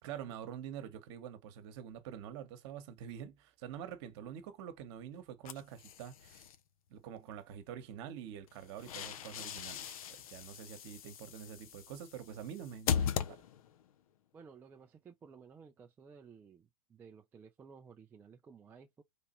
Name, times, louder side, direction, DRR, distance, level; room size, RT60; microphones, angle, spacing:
voice 1, 0.0-6.5 6.9-13.4, right 9 dB, 45° right, 1.1 m, -46 dB
sound 1, 5.4-6.6 8.5-13.9, left 8 dB, 70° left, 0.5 m, -39 dB
voice 2, 14.3-19.0, right 6 dB, 10° right, 0.3 m, -56 dB
3.4 x 2.8 x 4.2 m
hypercardioid pair, 130°, 19 cm